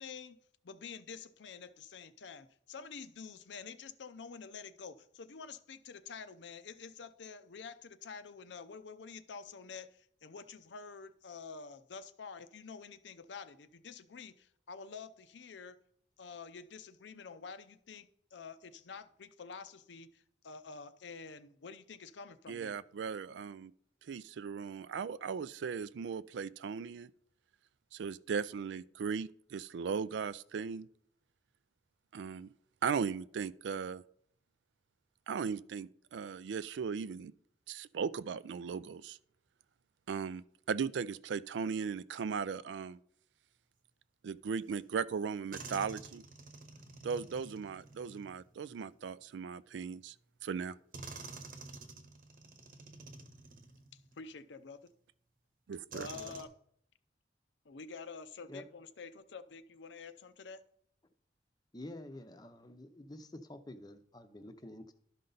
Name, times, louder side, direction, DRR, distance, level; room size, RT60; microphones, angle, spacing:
voice 1, 0.0-15.8 16.2-22.8 53.9-54.8 55.9-56.5 57.6-60.6, left 5 dB, 85° left, 0.6 m, -48 dB
voice 2, 22.5-23.7 24.1-27.1 27.9-30.9 32.1-32.5 32.8-34.0 35.3-37.3 37.7-39.2 40.1-43.0 44.2-46.2 47.0-50.1 50.4-50.7 55.7-56.1, right 6 dB, 85° right, 0.3 m, -37 dB
sound 1, 44.8-44.9 45.5-49.1 50.1-50.2 50.9-54.3 54.9-55.0 55.9-56.5, right 3 dB, 50° right, 1.0 m, -50 dB
voice 3, 61.7-64.9, left 1 dB, 20° left, 0.6 m, -49 dB
12.0 x 5.5 x 3.9 m
head